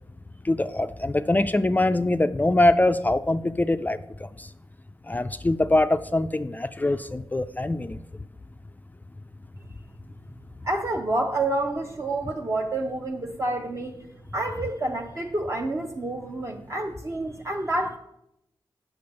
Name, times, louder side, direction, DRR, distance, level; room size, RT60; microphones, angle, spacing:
voice 1, 0.4-4.5 5.1-8.0, left 2 dB, 20° left, 11 dB, 0.3 m, -23 dB
voice 2, 10.6-14.0 14.3-18.0, right 2 dB, 30° right, 2 dB, 0.7 m, -28 dB
6.9 x 6.0 x 6.4 m, 0.83 s
cardioid pair, 70°, 9 cm